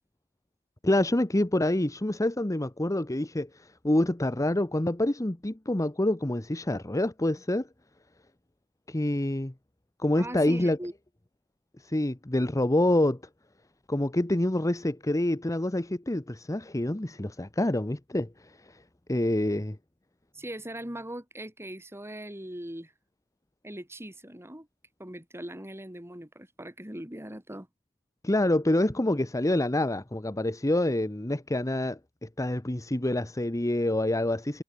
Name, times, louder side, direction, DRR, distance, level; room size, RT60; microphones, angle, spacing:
voice 1, 0.8-7.7 8.9-9.5 10.0-10.8 11.8-13.2 13.9-18.8 19.1-19.8 28.2-34.6, left 1 dB, 15° left, 0.9 m, -27 dB
voice 2, 10.2-10.9 20.3-22.9 23.6-24.7 25.0-27.7, right 1 dB, 10° right, 5.3 m, -40 dB
head